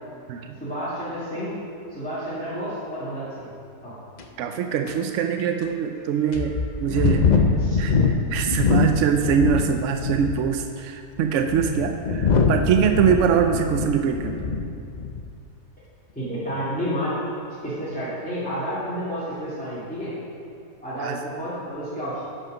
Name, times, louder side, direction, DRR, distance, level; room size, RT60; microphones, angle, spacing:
voice 1, 0.6-1.5 1.9-3.5 3.8-3.9 6.9-7.8 16.1-17.2 17.6-20.1 20.8-22.2, equal, 5° left, -13 dB, 2.4 m, -30 dB
sound 1, 4.2-4.3 4.9-5.0 5.6-5.7 6.3-9.7 10.0-10.5 11.2-14.7 14.9-15.3, left 4 dB, 80° left, 0.4 m, -23 dB
voice 2, 4.4-7.2 7.8-14.4 21.0-21.2, right 7 dB, 70° right, 5 dB, 0.7 m, -23 dB
11.0 x 5.5 x 6.2 m, 2.5 s
omnidirectional pair, 1.7 m